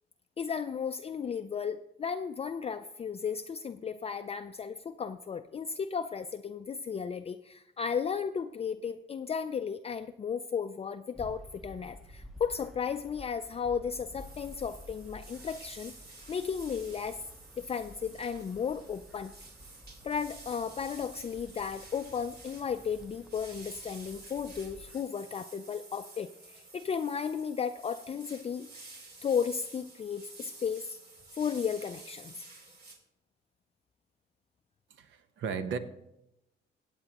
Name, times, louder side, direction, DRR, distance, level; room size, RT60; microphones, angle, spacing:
voice 1, 0.4-15.9 16.3-17.2 17.6-19.3 20.0-28.7 29.2-31.0 31.3-32.5, left 6 dB, 30° left, 7 dB, 0.4 m, -34 dB
sound 1, 11.1-25.0, left 1 dB, ahead, 0.7 m, -52 dB
sound 2, 14.2-33.0, right 3 dB, 55° right, 2.7 m, -51 dB
voice 2, 34.9-35.8, right 6 dB, 70° right, 9 dB, 1.0 m, -35 dB
17.0 x 8.7 x 2.9 m, 0.87 s
cardioid pair, 90°, 20 cm